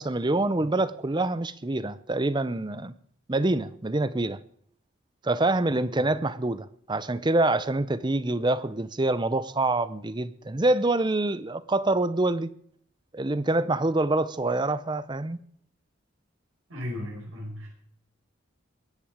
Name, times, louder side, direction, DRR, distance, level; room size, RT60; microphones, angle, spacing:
voice 1, 0.0-2.9 3.3-4.4 5.2-12.5 13.1-15.4, right 2 dB, 20° right, 0.6 m, -26 dB
voice 2, 16.7-17.7, left 1 dB, 75° right, 5.5 m, -36 dB
22.0 x 10.5 x 5.0 m
head